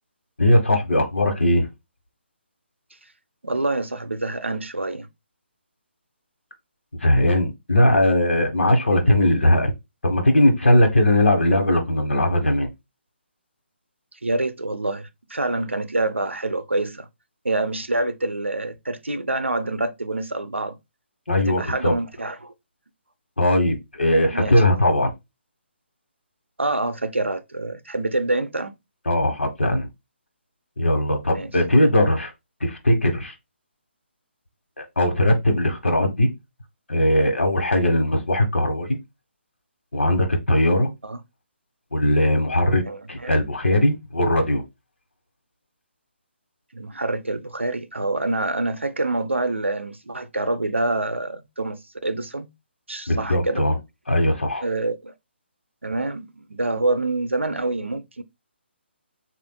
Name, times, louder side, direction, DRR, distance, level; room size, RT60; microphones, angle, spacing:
voice 1, 0.4-1.7 7.0-9.7 10.0-12.7 21.3-21.9 23.4-25.1 29.1-29.9 30.8-32.3 32.6-33.3 34.8-36.3 36.9-39.0 39.9-40.9 41.9-42.8 43.1-44.6 53.1-53.8 54.1-54.6, left 1 dB, 75° left, 1.2 m, -19 dB
voice 2, 3.4-5.1 14.2-17.1 17.4-20.8 21.4-22.5 24.3-24.5 26.6-28.7 31.3-31.5 41.0-41.2 42.8-43.4 46.7-52.5 52.9-53.6 54.6-55.1 55.8-58.2, right 2 dB, 85° right, 0.6 m, -26 dB
6.8 x 2.5 x 2.2 m
figure-of-eight pair, 140°, 6 cm